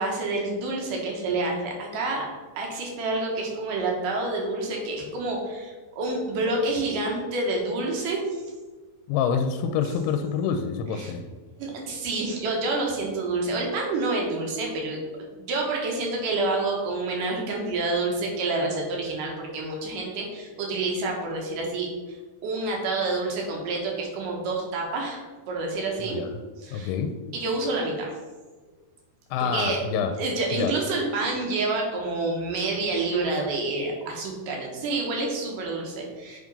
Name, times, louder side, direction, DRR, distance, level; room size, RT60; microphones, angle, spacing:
voice 1, 0.0-2.3 2.6-8.2 11.0-11.1 11.6-15.0 15.4-21.9 22.4-26.2 26.6-26.9 27.3-28.1 29.4-29.8 30.2-36.4, right 2 dB, 65° right, 0 dB, 2.4 m, -28 dB
voice 2, 9.1-11.2 26.0-26.4 26.7-27.2 29.3-30.1 30.5-30.7, left 7 dB, 85° left, 6 dB, 2.5 m, -27 dB
7.5 x 3.6 x 5.3 m, 1.3 s
omnidirectional pair, 4.6 m